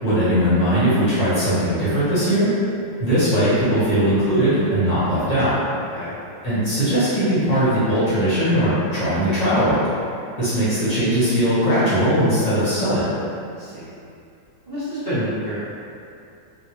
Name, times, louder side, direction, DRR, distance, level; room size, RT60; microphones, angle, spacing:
voice 1, 0.0-2.5 3.0-5.6 6.4-9.9 10.4-13.1, equal, 30° left, -14 dB, 0.7 m, -19 dB
voice 2, 5.7-6.1 13.5-13.9 14.7-15.5, equal, 25° right, -15 dB, 0.4 m, -29 dB
3.9 x 2.1 x 3.0 m, 2.5 s
omnidirectional pair, 2.4 m